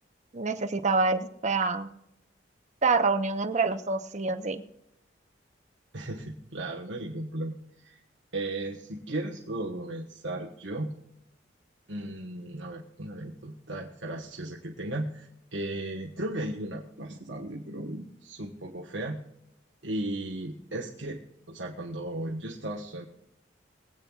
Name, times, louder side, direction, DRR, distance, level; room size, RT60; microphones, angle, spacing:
voice 1, 0.3-1.9 2.8-4.6, right 3 dB, 40° right, 9 dB, 0.9 m, -26 dB
voice 2, 5.9-8.0 8.3-10.9 11.9-19.2 19.8-21.2 21.5-23.1, right 1 dB, 70° right, -1 dB, 1.4 m, -36 dB
23.0 x 8.9 x 2.4 m, 0.81 s
head